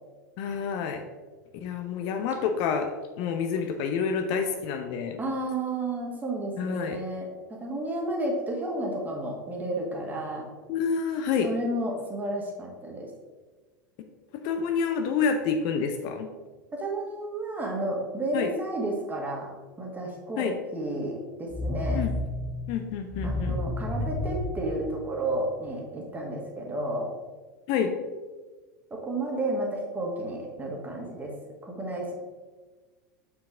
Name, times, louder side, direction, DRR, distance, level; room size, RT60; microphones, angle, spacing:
voice 1, 0.4-1.0 1.5-5.2 6.6-7.0 10.7-11.5 14.4-16.3 18.3-18.5 20.4-20.5 21.9-22.1 22.7-23.6 27.7-27.9, left 6 dB, 45° left, 6 dB, 0.6 m, -28 dB
voice 2, 5.2-7.3 7.6-10.5 11.4-13.1 16.7-19.5 19.8-22.0 23.2-27.1 28.9-31.3 31.6-32.1, right 1 dB, 15° right, -1 dB, 1.6 m, -32 dB
sound 1, 21.5-25.5, left 2 dB, 5° left, 0.7 m, -32 dB
7.3 x 4.7 x 3.6 m, 1.3 s
figure-of-eight pair, 85°, 10 cm